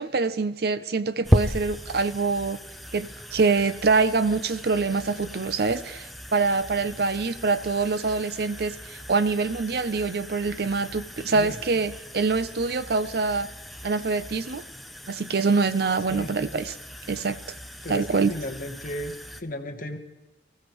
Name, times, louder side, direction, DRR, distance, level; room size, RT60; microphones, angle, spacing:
voice 1, 0.0-2.6 2.9-13.5 13.8-14.6 15.1-16.8 17.1-17.6 17.9-18.3, right 4 dB, 60° right, 0.6 m, -25 dB
sound 1, 1.2-19.4, equal, ahead, 0.6 m, -35 dB
voice 2, 17.8-19.1 19.4-20.0, left 1 dB, 50° left, 1.1 m, -34 dB
25.0 x 14.5 x 3.1 m
head